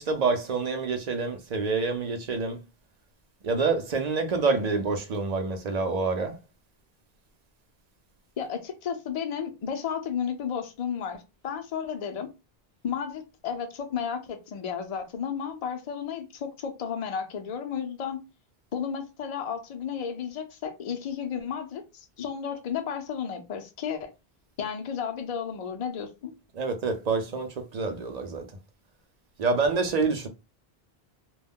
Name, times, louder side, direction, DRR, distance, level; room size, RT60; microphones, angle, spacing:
voice 1, 0.0-2.6 3.4-6.4 26.5-28.5 29.4-30.3, right 4 dB, 50° right, 0.5 m, -27 dB
voice 2, 8.4-12.3 12.8-18.2 18.7-24.1 24.6-26.3, left 7 dB, 50° left, 0.5 m, -33 dB
2.3 x 2.0 x 3.5 m
omnidirectional pair, 1.0 m